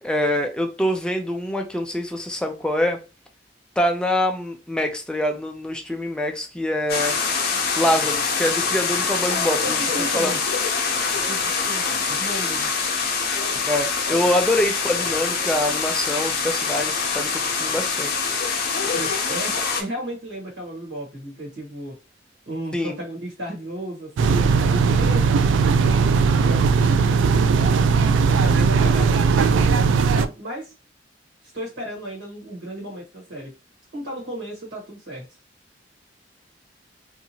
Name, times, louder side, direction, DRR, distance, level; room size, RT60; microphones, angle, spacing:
voice 1, 0.0-3.0 3.8-7.2 7.8-9.8 10.1-10.3 13.7-18.1 22.7-23.0, left 1 dB, 5° left, 0.3 m, -24 dB
sound 1, 6.9-19.8, left 5 dB, 55° left, 0.6 m, -24 dB
voice 2, 9.3-10.4 11.3-11.8 12.1-12.7 18.9-21.9 22.5-27.9 28.4-29.8 30.1-30.7 31.4-33.5 33.9-35.2, right 1 dB, 75° right, 1.3 m, -34 dB
sound 2, 24.2-30.3, right 5 dB, 90° right, 0.3 m, -18 dB
2.8 x 2.4 x 2.7 m
head